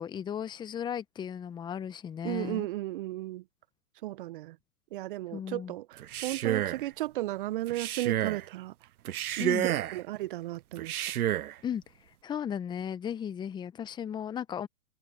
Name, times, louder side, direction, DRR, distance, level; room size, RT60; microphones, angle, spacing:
voice 1, 0.0-2.7 5.3-5.7 9.4-9.7 11.6-11.8 12.2-14.7, left 8 dB, 10° left, 1.0 m, -35 dB
voice 2, 2.2-3.4 4.0-4.6 4.9-8.7 9.4-10.9, right 16 dB, 40° right, 0.8 m, -35 dB
Male speech man speaking, 6.0-6.9 7.7-8.4 9.0-10.0 10.8-11.5, right 12 dB, 85° right, 0.5 m, -30 dB
hypercardioid pair, 125°, 43 cm